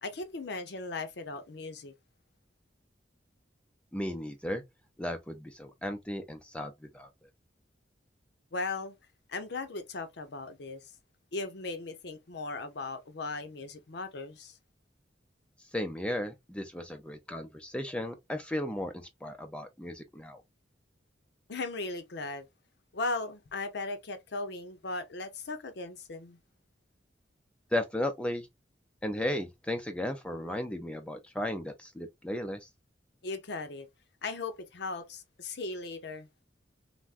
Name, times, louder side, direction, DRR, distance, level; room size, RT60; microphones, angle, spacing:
voice 1, 0.0-1.9 8.5-9.0 9.3-10.9 11.3-14.6 21.5-22.5 22.9-26.4 33.2-33.9 34.2-36.3, left 3 dB, 65° left, 0.6 m, -37 dB
voice 2, 3.9-4.6 5.0-7.1 15.7-18.9 19.2-20.4 27.7-28.5 29.0-32.7, left 1 dB, 5° left, 0.4 m, -35 dB
3.4 x 2.1 x 2.4 m
head